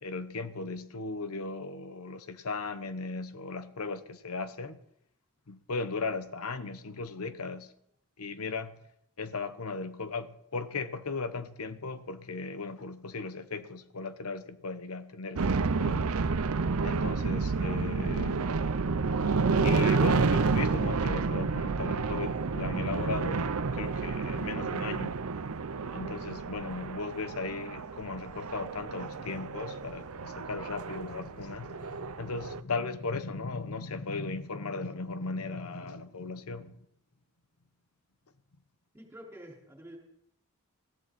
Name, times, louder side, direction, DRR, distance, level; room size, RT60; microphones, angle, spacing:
voice 1, 0.0-4.8 5.5-7.7 8.2-8.8 9.2-16.2 16.8-18.5 19.6-25.2 25.9-36.8, left 3 dB, 85° left, 1.0 m, -37 dB
sound 1, 15.4-32.6, right 4 dB, 80° right, 0.7 m, -30 dB
voice 2, 38.9-40.0, equal, 10° right, 4.6 m, -48 dB
20.0 x 15.0 x 4.2 m
head